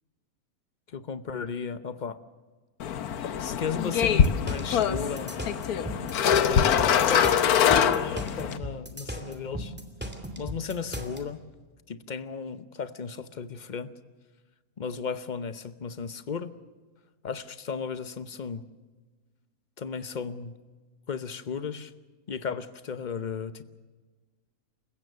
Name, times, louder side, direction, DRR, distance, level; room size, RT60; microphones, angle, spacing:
voice 1, 0.9-2.2 3.4-5.3 6.3-9.7 10.4-11.4 11.9-13.9 14.8-16.5 17.2-18.6 19.8-20.5 21.1-21.9 22.3-23.6, left 6 dB, 35° left, 12 dB, 0.9 m, -35 dB
sound 1, 2.8-8.6, left 8 dB, 80° left, 1.4 m, -24 dB
sound 2, 4.0-11.2, equal, 5° right, 2.4 m, -36 dB
28.5 x 16.0 x 6.7 m, 1.4 s
omnidirectional pair, 1.6 m